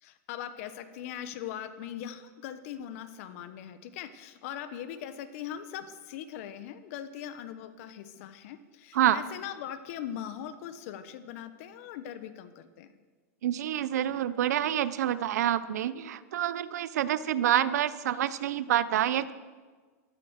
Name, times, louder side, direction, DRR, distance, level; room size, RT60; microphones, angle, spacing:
voice 1, 0.0-12.9, left 10 dB, 60° left, 11 dB, 1.2 m, -40 dB
voice 2, 13.4-19.3, right 11 dB, 80° right, 15 dB, 0.8 m, -27 dB
14.5 x 13.5 x 6.6 m, 1.4 s
supercardioid pair, 140°, 9 cm